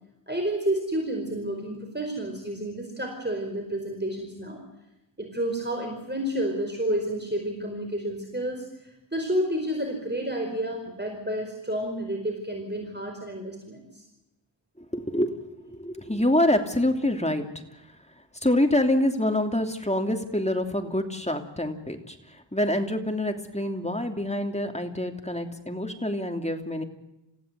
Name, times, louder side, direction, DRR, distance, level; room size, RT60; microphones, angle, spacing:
voice 1, 0.3-4.6 5.2-14.0, right 1 dB, 25° right, 2 dB, 4.9 m, -30 dB
voice 2, 14.8-17.4 18.4-26.8, left 1 dB, 15° left, 5 dB, 2.9 m, -26 dB
28.0 x 16.0 x 8.2 m, 0.92 s
wide cardioid pair, 40°, 45 cm